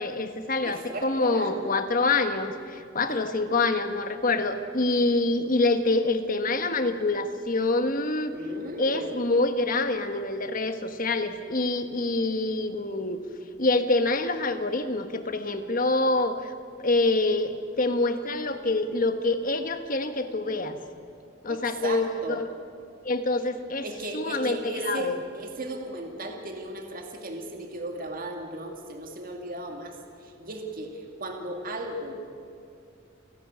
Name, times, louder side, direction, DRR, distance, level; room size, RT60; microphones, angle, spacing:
voice 1, 0.0-8.3 8.8-13.2 13.6-16.5 16.8-20.8 21.4-22.4 23.0-23.8 24.1-25.2, left 2 dB, 40° left, 8 dB, 1.2 m, -26 dB
voice 2, 0.6-1.6 3.1-3.3 8.3-9.1 21.5-22.4 23.8-30.0 30.2-32.1, right 1 dB, 45° right, 3 dB, 2.1 m, -36 dB
29.5 x 11.0 x 9.6 m, 2.4 s
head